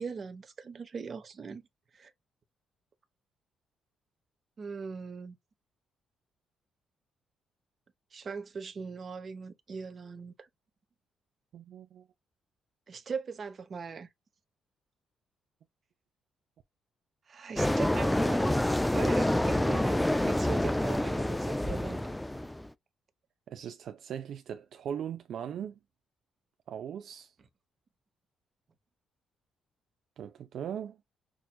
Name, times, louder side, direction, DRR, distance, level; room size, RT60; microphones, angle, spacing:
voice 1, 0.0-1.6 1.9-2.1 4.6-5.4 8.1-10.5 12.9-14.1 17.3-22.0, right 5 dB, 45° right, 0.9 m, -40 dB
voice 2, 11.5-12.1 23.5-25.8 26.7-27.3 30.2-31.0, right 9 dB, 70° right, 0.5 m, -39 dB
sound 1, 17.6-22.7, left 1 dB, 10° left, 0.3 m, -27 dB
6.0 x 2.5 x 2.2 m
cardioid pair, 90°, 0 cm